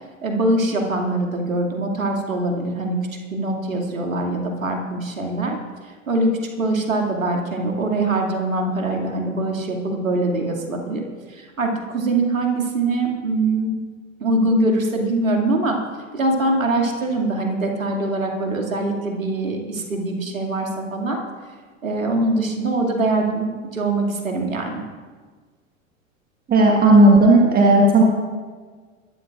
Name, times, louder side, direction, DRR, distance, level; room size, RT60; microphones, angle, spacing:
voice 1, 0.2-5.6 5.8-11.0 11.3-13.7 14.2-15.8 16.1-21.2 21.8-23.5 23.7-24.8, right 2 dB, 80° right, 1 dB, 2.5 m, -23 dB
voice 2, 26.5-28.0, right 2 dB, 20° right, 0 dB, 1.7 m, -13 dB
22.5 x 13.5 x 2.5 m, 1.5 s
figure-of-eight pair, 90°, 40 cm